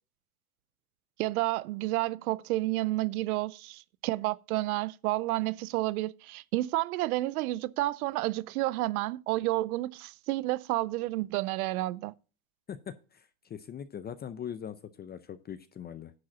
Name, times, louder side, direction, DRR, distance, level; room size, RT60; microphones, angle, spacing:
voice 1, 1.2-12.1, right 18 dB, 90° right, 0.6 m, -30 dB
voice 2, 12.7-16.1, left 8 dB, 25° left, 0.5 m, -41 dB
10.5 x 4.7 x 6.1 m
supercardioid pair, 115°, 42 cm